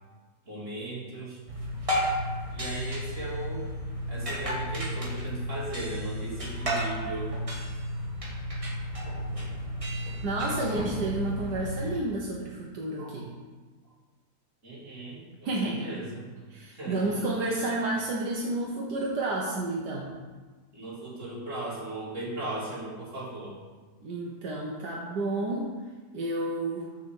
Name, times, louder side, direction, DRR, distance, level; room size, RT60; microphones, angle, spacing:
voice 1, 0.4-1.4 2.5-3.7 4.1-7.4 13.0-13.2 14.6-16.5 16.7-17.2 20.7-23.6, right 2 dB, 45° right, -8 dB, 3.4 m, -37 dB
sound 1, 1.5-11.9, equal, 20° right, 1.3 m, -32 dB
voice 2, 10.2-13.3 15.4-15.9 16.5-20.1 24.0-25.7 26.1-26.9, right 2 dB, 80° right, -2 dB, 1.6 m, -30 dB
6.8 x 6.8 x 7.0 m, 1.4 s
omnidirectional pair, 1.8 m